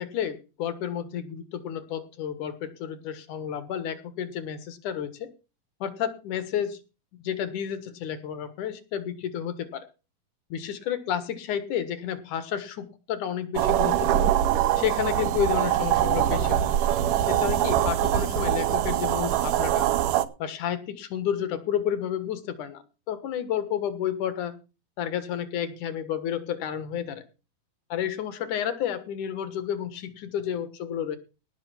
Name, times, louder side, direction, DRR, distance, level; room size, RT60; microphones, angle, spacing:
voice 1, 0.0-5.3 5.8-6.8 7.1-9.9 10.5-14.3 14.8-16.7 17.3-19.9 20.4-24.6 25.0-27.2 27.9-31.2, left 9 dB, 65° left, 12 dB, 2.8 m, -31 dB
sound 1, 13.6-20.3, right 11 dB, 75° right, 2.4 m, -23 dB
18.0 x 6.5 x 5.9 m, 0.32 s
omnidirectional pair, 4.0 m